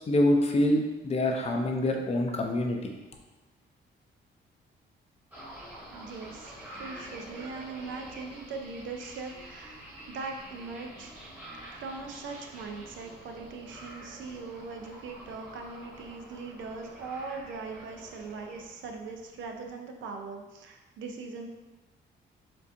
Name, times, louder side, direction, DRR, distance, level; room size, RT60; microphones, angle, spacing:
voice 1, 0.1-2.9, left 1 dB, 30° left, 2 dB, 0.6 m, -25 dB
sound 1, 5.3-19.7, right 1 dB, 10° right, 1.2 m, -47 dB
voice 2, 5.9-11.1 11.7-21.5, right 4 dB, 70° right, 3 dB, 0.5 m, -40 dB
4.5 x 2.5 x 2.6 m, 1.1 s
cardioid pair, 90°, 20 cm